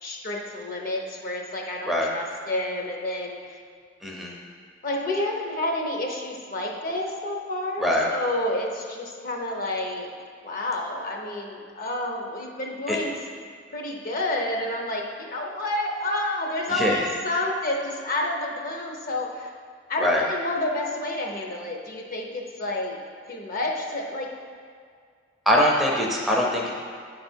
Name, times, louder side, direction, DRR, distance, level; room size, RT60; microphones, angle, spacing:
voice 1, 0.0-3.6 4.8-10.1 10.4-13.1 13.7-19.5 19.9-23.0 23.3-24.3, left 1 dB, 50° left, 0 dB, 0.8 m, -29 dB
voice 2, 4.0-4.4 7.8-8.1 12.9-13.0 16.7-17.1 20.0-20.2 25.5-26.7, left 1 dB, ahead, -2 dB, 0.6 m, -22 dB
9.0 x 3.4 x 4.4 m, 2.1 s
head